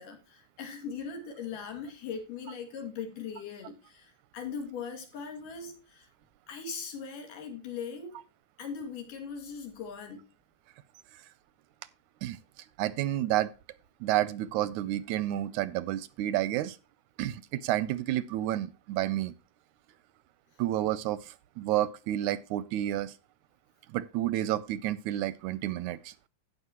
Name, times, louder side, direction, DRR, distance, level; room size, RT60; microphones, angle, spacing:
voice 1, 0.0-6.1 6.5-8.2 8.6-10.2, left 6 dB, 80° left, 3.9 m, -40 dB
voice 2, 12.8-13.5 14.0-16.8 17.2-19.3 20.6-23.1 23.9-26.1, right 13 dB, 80° right, 1.8 m, -30 dB
16.5 x 6.1 x 2.9 m
omnidirectional pair, 3.8 m